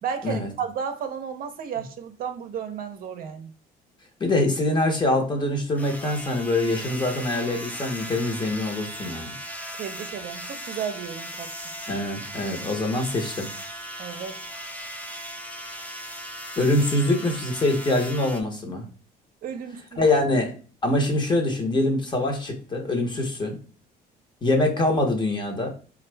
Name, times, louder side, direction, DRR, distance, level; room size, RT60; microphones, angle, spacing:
voice 1, 0.0-3.5 9.7-11.5 14.0-14.4 19.4-20.1, right 7 dB, 60° right, 7 dB, 0.6 m, -33 dB
voice 2, 4.2-9.3 11.9-13.5 16.6-18.9 20.0-20.5 20.8-23.6 24.4-25.7, left 2 dB, 25° left, 3 dB, 1.0 m, -24 dB
sound 1, 5.8-18.4, equal, 10° left, 0.5 m, -37 dB
4.2 x 2.5 x 3.3 m, 0.39 s
cardioid pair, 110°, 17 cm